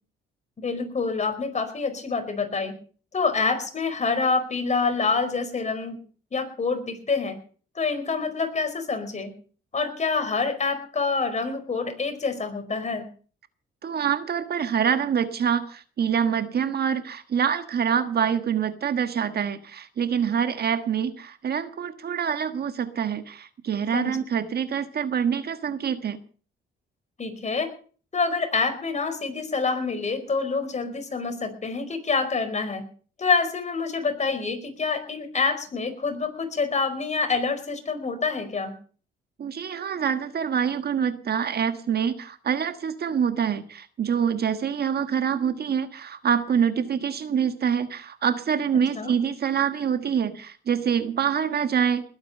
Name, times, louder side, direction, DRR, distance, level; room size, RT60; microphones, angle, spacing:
voice 1, 0.6-2.7 3.1-6.0 6.3-7.4 7.7-9.3 9.7-13.1 23.9-24.2 27.2-27.7 28.1-32.9 33.2-38.7 48.9-49.1, left 4 dB, 35° left, 8 dB, 4.7 m, -26 dB
voice 2, 13.8-26.2 39.4-52.0, right 7 dB, 55° right, 11 dB, 1.4 m, -25 dB
20.0 x 9.0 x 6.6 m, 0.42 s
cardioid pair, 90°, 20 cm